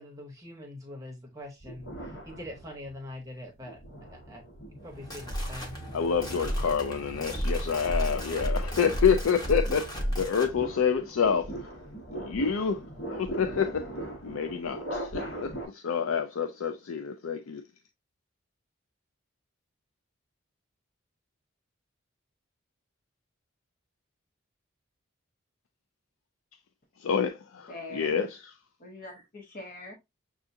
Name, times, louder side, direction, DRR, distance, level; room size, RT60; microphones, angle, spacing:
voice 1, 0.0-3.8 4.1-4.4 4.7-5.8, left 1 dB, 15° right, 0.8 m, -43 dB
sound 1, 1.6-3.0 3.6-15.6, right 1 dB, 70° left, 1.6 m, -41 dB
sound 2, 4.9-10.5, equal, 20° left, 1.0 m, -32 dB
voice 2, 5.9-11.5 12.1-12.8 13.1-13.9 14.2-17.6 27.0-28.5, left 6 dB, 85° left, 0.5 m, -28 dB
voice 3, 27.7-28.2 28.8-29.9, left 2 dB, 45° left, 0.8 m, -43 dB
6.7 x 2.5 x 2.6 m
head